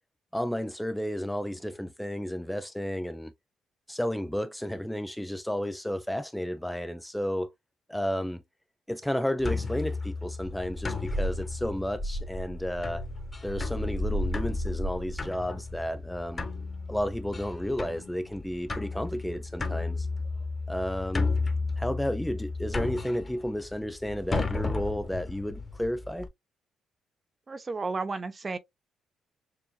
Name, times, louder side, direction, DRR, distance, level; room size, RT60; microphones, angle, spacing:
voice 1, 0.3-3.3 3.9-7.5 7.9-8.4 8.9-13.1 13.4-16.5 16.9-20.1 20.7-21.3 21.8-26.3, equal, 5° left, 0.4 m, -32 dB
sound 1, 9.4-26.3, left 3 dB, 25° left, 1.2 m, -33 dB
voice 2, 27.5-28.6, right 3 dB, 30° right, 0.8 m, -32 dB
6.8 x 2.5 x 2.3 m
cardioid pair, 90°, 0 cm